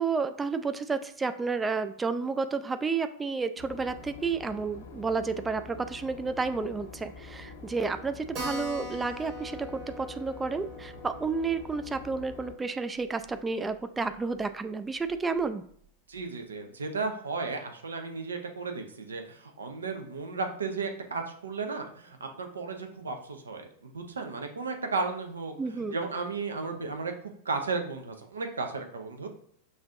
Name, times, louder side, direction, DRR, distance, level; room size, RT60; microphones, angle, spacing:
voice 1, 0.0-15.7 25.6-26.0, right 4 dB, 15° right, 10 dB, 0.3 m, -31 dB
Boat Water vehicle / Engine, 3.6-12.5, left 3 dB, 60° left, 0.7 m, -46 dB
Keyboard (musical), 8.3-13.4 13.7-13.8 14.1-14.2 14.4-14.5 15.1-15.4, equal, 35° right, 1.3 m, -42 dB
voice 2, 16.1-27.1 27.4-29.3, right 4 dB, 70° right, 5 dB, 0.6 m, -34 dB
6.1 x 2.6 x 2.5 m, 0.63 s
figure-of-eight pair, 90°, 0 cm